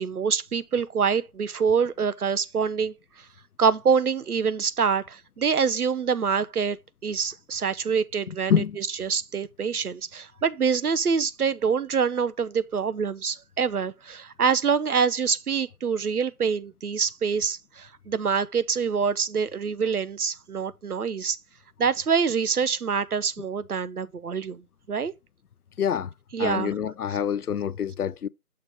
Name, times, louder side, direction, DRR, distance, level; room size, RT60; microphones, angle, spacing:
voice 1, 0.0-3.3 3.6-6.8 7.0-21.4 21.8-24.6 24.9-25.1 26.3-26.7, right 6 dB, 80° right, 0.6 m, -25 dB
voice 2, 8.3-8.8 25.8-26.1 26.4-28.3, left 8 dB, 80° left, 0.5 m, -26 dB
6.6 x 3.3 x 5.2 m
figure-of-eight pair, 170°, 45 cm